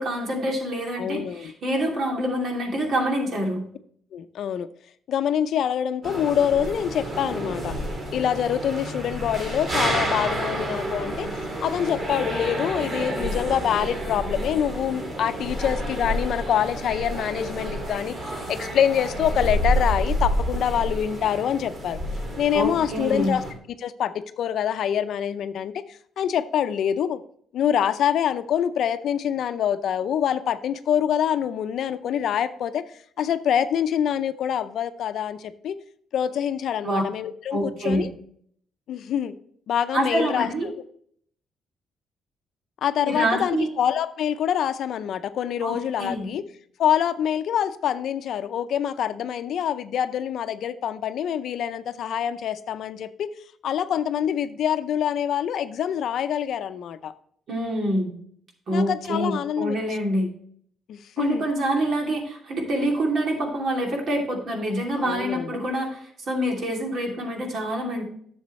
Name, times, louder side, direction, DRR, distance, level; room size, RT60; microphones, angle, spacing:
voice 1, 0.0-3.6 22.5-23.3 36.8-37.0 37.5-38.0 39.9-40.7 43.0-43.7 45.6-46.3 57.5-58.1 58.7-60.3 61.2-68.0, right 1 dB, 60° right, 0 dB, 2.9 m, -26 dB
voice 2, 1.0-1.5 4.1-4.7 5.1-7.7 8.1-22.0 22.4-23.4 23.8-27.2 27.5-32.8 33.2-35.8 36.1-38.1 38.9-39.4 39.7-40.8 42.8-46.4 46.8-53.3 53.6-57.1 58.7-59.8 60.1-60.3 60.9-61.4 65.0-65.5, left 9 dB, 70° left, 11 dB, 0.5 m, -25 dB
sound 1, 6.0-23.5, equal, 40° right, 2.4 m, -29 dB
10.5 x 7.1 x 3.2 m, 0.63 s
cardioid pair, 90°, 0 cm